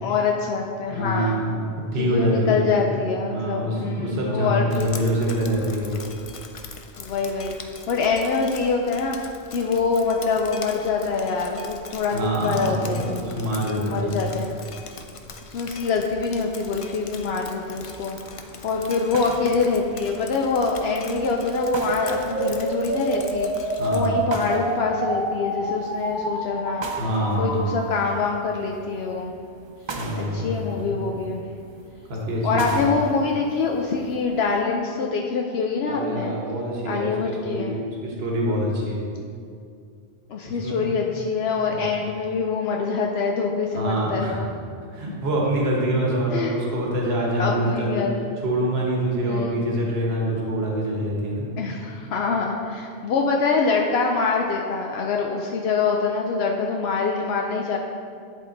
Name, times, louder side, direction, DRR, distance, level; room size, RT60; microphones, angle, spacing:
voice 1, 0.0-1.4 2.0-4.9 7.0-9.2 9.5-13.1 13.6-14.5 15.5-18.2 18.6-26.9 27.4-29.3 30.2-31.4 32.4-36.3 36.9-37.8 40.3-44.5 46.3-46.6 47.4-48.2 49.2-49.6 51.6-57.8, left 4 dB, 75° left, 1 dB, 0.8 m, -25 dB
voice 2, 0.9-1.6 1.9-2.6 3.3-6.0 12.1-14.3 23.8-24.2 26.9-27.7 29.9-31.0 32.1-32.9 35.9-39.1 40.5-40.9 41.7-41.8 43.7-44.4 44.9-48.0 48.4-51.5, right 1 dB, 75° right, -2 dB, 1.3 m, -25 dB
Drip, 4.7-24.1, left 4 dB, 45° left, 0.4 m, -41 dB
sound 1, 17.6-34.6, right 3 dB, 40° right, 0.4 m, -41 dB
sound 2, 20.8-27.8, right 2 dB, 30° left, 1.5 m, -28 dB
10.5 x 3.7 x 3.9 m, 2.3 s
omnidirectional pair, 1.1 m